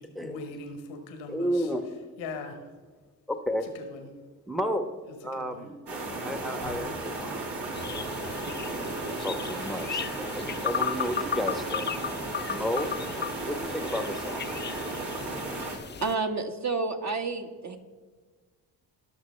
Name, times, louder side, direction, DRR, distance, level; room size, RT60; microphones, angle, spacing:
voice 1, 0.2-1.7 2.2-2.7 3.7-4.1 5.3-5.7 6.6-6.8 7.6-7.8, left 3 dB, 90° left, 6 dB, 1.4 m, -40 dB
voice 2, 1.3-2.1 3.3-3.7 4.5-4.9 5.2-5.8 6.2-7.4 7.9-8.2 8.5-11.9 12.5-12.9 13.4-14.5, equal, ahead, 6 dB, 1.0 m, -32 dB
sound 1, 5.9-15.8, right 2 dB, 65° right, 2.5 m, -35 dB
sound 2, 7.7-16.1, left 8 dB, 25° left, 0.5 m, -36 dB
voice 3, 16.0-17.8, right 4 dB, 35° right, 5 dB, 1.5 m, -30 dB
18.0 x 6.1 x 3.3 m, 1.5 s
supercardioid pair, 50°, 45 cm